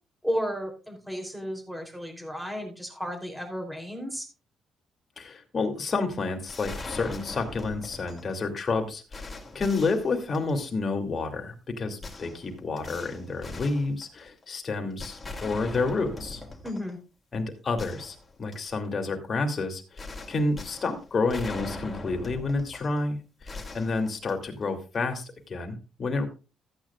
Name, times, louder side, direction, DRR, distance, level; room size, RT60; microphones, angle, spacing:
voice 1, 0.2-4.3 16.6-17.0, equal, 5° right, 3 dB, 3.4 m, -33 dB
voice 2, 5.2-9.3 9.5-16.4 17.3-20.0 20.3-26.3, left 3 dB, 40° left, 4 dB, 2.7 m, -30 dB
sound 1, 6.5-8.4 8.8-8.9 9.1-10.8 12.0-14.4 15.0-17.0 17.3-17.4 17.8-18.8 20.0-23.0 23.4-24.7, left 2 dB, 25° left, 2.9 m, -41 dB
14.5 x 9.3 x 2.4 m, 0.31 s
cardioid pair, 90°, 0 cm